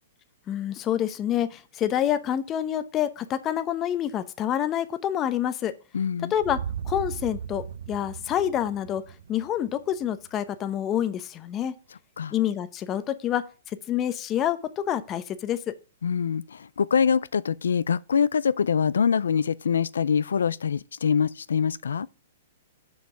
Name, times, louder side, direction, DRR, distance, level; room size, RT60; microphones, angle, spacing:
voice 1, 0.5-5.7 6.3-6.6 6.8-9.0 9.3-11.7 12.3-13.4 13.7-15.6, left 10 dB, 25° left, 0.8 m, -27 dB
voice 2, 5.9-6.3 12.2-12.3 16.0-22.1, left 7 dB, 85° left, 0.3 m, -24 dB
sound 1, 6.4-10.4, right 8 dB, 75° right, 0.6 m, -37 dB
6.3 x 5.2 x 6.9 m
hypercardioid pair, 135°, 0 cm